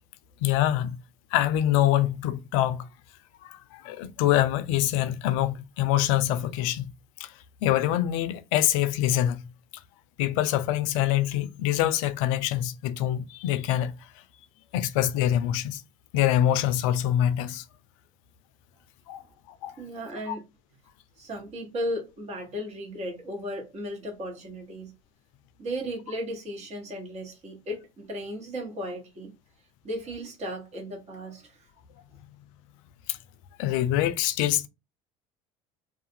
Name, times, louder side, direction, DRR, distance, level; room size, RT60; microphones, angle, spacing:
voice 1, 0.4-1.0 1.3-2.9 3.4-6.8 7.2-7.3 7.6-9.4 10.2-13.9 14.7-15.8 16.1-17.6 19.1-19.2 19.6-19.7 20.3-20.4 33.1-33.2 33.6-34.7, left 12 dB, 70° left, 0.4 m, -25 dB
voice 2, 19.8-20.4 21.2-24.9 25.6-29.3 29.8-31.7, equal, 40° right, 1.2 m, -35 dB
2.4 x 2.4 x 2.7 m
hypercardioid pair, 70°, 18 cm